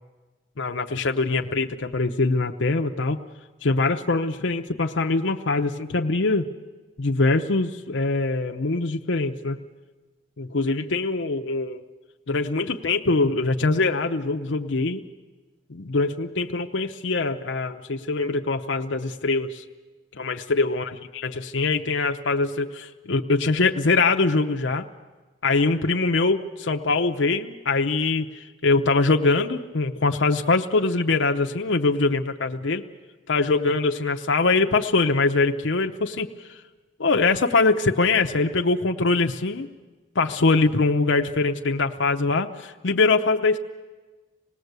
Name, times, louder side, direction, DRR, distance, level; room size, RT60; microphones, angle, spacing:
voice 1, 0.6-3.2 3.6-6.5 7.0-9.6 10.4-11.8 12.3-15.0 15.7-19.6 20.1-24.9 25.4-32.8 33.3-36.6 37.0-39.7 40.1-43.6, left 3 dB, 85° left, 4 dB, 0.8 m, -23 dB
26.5 x 18.5 x 8.1 m, 1.3 s
head